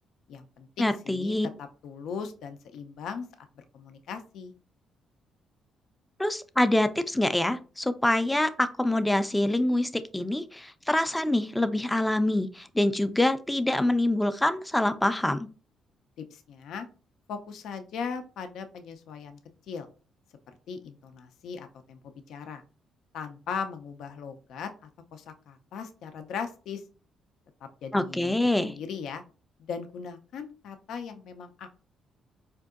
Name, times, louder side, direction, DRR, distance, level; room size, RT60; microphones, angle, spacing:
voice 1, 0.3-3.2 3.6-4.5 16.2-16.9 17.3-19.4 19.7-19.9 20.7-22.0 22.3-22.6 23.1-24.7 25.1-26.8 27.6-29.2 29.7-31.9, left 6 dB, 80° left, 8 dB, 0.4 m, -38 dB
voice 2, 0.8-1.5 6.2-15.5 27.9-28.7, left 1 dB, 10° left, 11 dB, 0.4 m, -25 dB
4.5 x 2.6 x 2.4 m, 0.36 s
cardioid pair, 90°, 0 cm